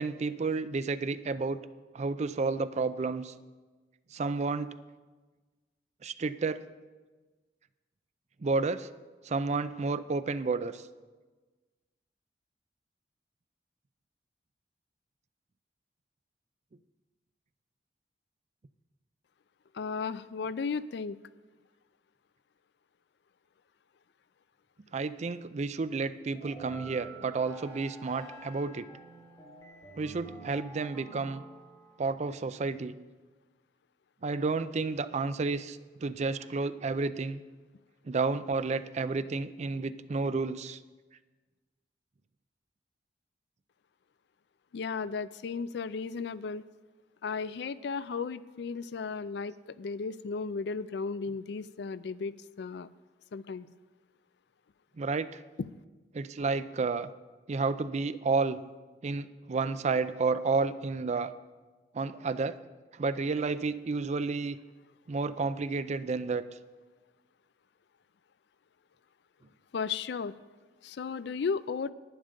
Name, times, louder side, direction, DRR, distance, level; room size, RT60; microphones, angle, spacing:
voice 1, 0.0-1.6 1.9-3.3 4.1-4.7 6.0-6.6 8.4-8.9 9.2-10.8 24.9-28.9 30.0-31.4 32.0-32.9 34.2-37.4 38.1-40.8 55.0-55.4 56.1-57.1 57.5-58.6 59.0-61.3 61.9-62.6 63.0-64.6 65.1-66.4, right 4 dB, 40° right, 13 dB, 0.4 m, -31 dB
voice 2, 19.7-21.2 44.7-46.6 47.2-52.9 53.3-53.7 55.6-55.7 69.7-70.4 70.8-71.9, left 5 dB, 70° left, 16 dB, 0.4 m, -35 dB
sound 1, 26.3-32.0, right 2 dB, 20° left, 2.2 m, -48 dB
11.0 x 9.9 x 5.2 m, 1.3 s
head